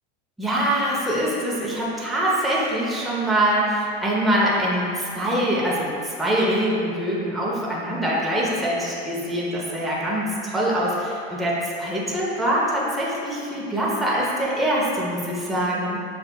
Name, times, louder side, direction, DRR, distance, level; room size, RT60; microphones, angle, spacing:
voice 1, 0.4-16.0, right 1 dB, ahead, -6 dB, 0.6 m, -24 dB
6.2 x 3.3 x 2.2 m, 2.5 s
supercardioid pair, 125°, 33 cm